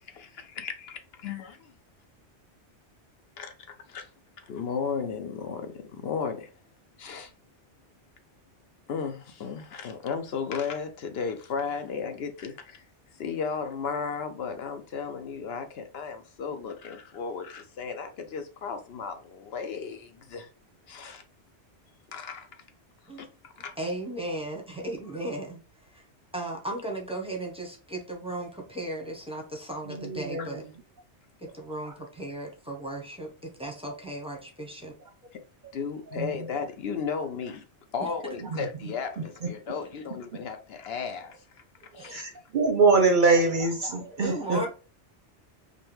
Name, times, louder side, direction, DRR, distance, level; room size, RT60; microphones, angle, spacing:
voice 1, 0.0-1.6 3.7-4.1 4.4-6.5 7.0-7.3 8.9-12.8 13.1-20.5 20.9-21.2 22.1-22.5 23.2-23.7 30.4-30.5 35.7-37.6 37.9-41.6 41.9-42.2 44.5-44.7, left 5 dB, 65° left, 0.7 m, -34 dB
voice 2, 23.8-25.6 25.9-26.0 26.3-30.6 31.5-34.9 44.2-44.7, right 1 dB, 5° right, 0.8 m, -36 dB
voice 3, 29.9-30.6 36.2-36.3 38.5-38.6 42.1-44.6, right 4 dB, 55° right, 0.7 m, -23 dB
5.0 x 2.2 x 3.1 m
omnidirectional pair, 1.2 m